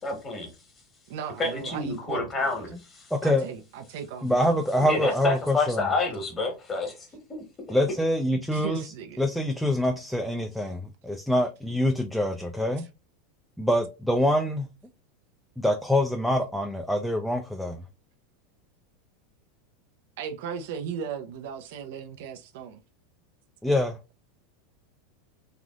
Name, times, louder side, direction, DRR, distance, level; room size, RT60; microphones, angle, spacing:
voice 1, 0.0-0.5 1.4-3.1 4.8-7.4, left 3 dB, 25° left, 1.4 m, -29 dB
voice 2, 1.1-2.5 3.2-4.5 8.5-9.2 12.8-12.9 20.2-22.8, right 7 dB, 70° right, 0.5 m, -37 dB
voice 3, 3.1-3.5 4.2-5.8 7.7-8.9 9.2-12.8 13.6-14.7 15.6-17.8 23.6-24.0, left 1 dB, ahead, 0.4 m, -25 dB
3.4 x 2.5 x 2.4 m
hypercardioid pair, 100°, 0 cm